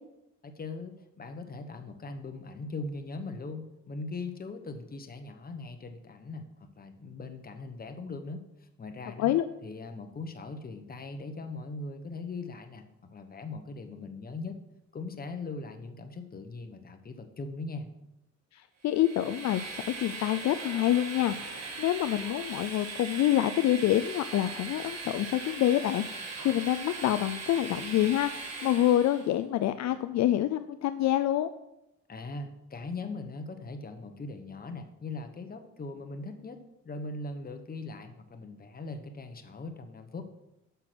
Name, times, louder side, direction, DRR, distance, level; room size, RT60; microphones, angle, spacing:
voice 1, 0.4-9.3 9.6-14.6 14.9-17.9 32.1-40.2, left 3 dB, 30° left, 7 dB, 1.1 m, -40 dB
voice 2, 18.5-31.5, left 13 dB, 65° left, 11 dB, 0.4 m, -27 dB
Train, 18.9-29.3, right 4 dB, 60° right, 1.7 m, -40 dB
6.8 x 6.0 x 6.0 m, 0.90 s
cardioid pair, 90°, 30 cm